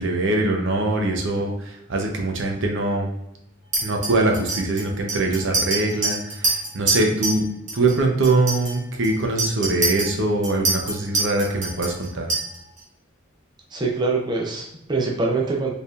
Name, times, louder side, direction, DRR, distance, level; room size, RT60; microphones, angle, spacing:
voice 1, 0.0-3.1 3.8-7.4 7.7-12.3, right 2 dB, 65° right, 2 dB, 0.7 m, -23 dB
Chink clink, 3.7-7.4 7.7-8.0 8.2-12.8, right 2 dB, 40° right, 1.4 m, -26 dB
voice 2, 13.7-15.7, right 3 dB, 20° right, -1 dB, 0.6 m, -24 dB
4.5 x 3.4 x 2.4 m, 0.85 s
head